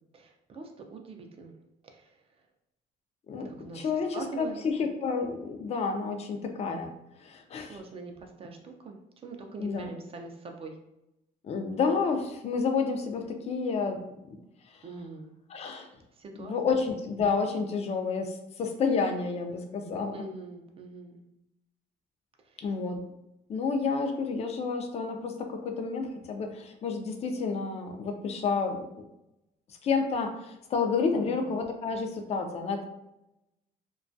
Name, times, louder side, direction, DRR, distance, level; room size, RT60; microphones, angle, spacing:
voice 1, 0.1-1.6 1.8-2.2 3.4-4.6 7.6-10.8 14.8-15.4 16.1-16.8 20.1-21.2 22.4-22.7 31.1-31.5, right 3 dB, 35° right, 3 dB, 0.4 m, -43 dB
voice 2, 3.3-6.9 7.2-7.8 9.6-9.9 11.4-14.0 15.5-15.9 16.4-20.1 22.6-23.0 23.5-29.0 29.8-32.8, left 5 dB, 40° left, 5 dB, 0.4 m, -30 dB
2.2 x 2.2 x 2.5 m, 0.87 s
cardioid pair, 110°, 17 cm